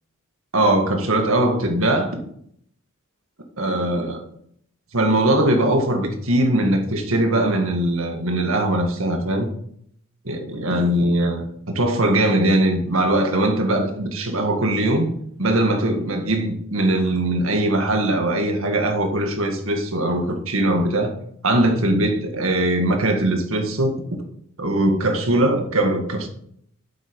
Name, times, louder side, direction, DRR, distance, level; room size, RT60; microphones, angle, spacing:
voice 1, 0.5-2.2 3.6-4.2 4.9-9.5 10.3-11.5 11.7-15.1 15.4-21.1 21.4-24.0 24.6-26.3, right 1 dB, 70° right, 1.9 m, -20 dB
8.7 x 8.1 x 4.7 m
head